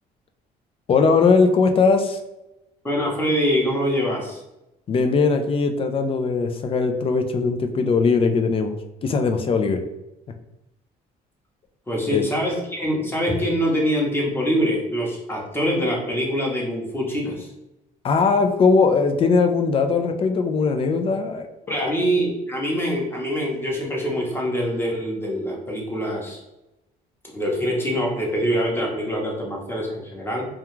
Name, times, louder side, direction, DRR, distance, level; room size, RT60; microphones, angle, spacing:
voice 1, 0.9-2.2 4.9-8.7 9.0-9.8 12.0-12.3 18.0-21.9, left 4 dB, 35° left, 6 dB, 0.4 m, -20 dB
voice 2, 2.8-4.4 11.9-17.5 21.7-26.4 27.3-30.5, equal, 15° left, -2 dB, 0.8 m, -24 dB
2.3 x 2.3 x 3.0 m, 0.94 s
cardioid pair, 110°, 17 cm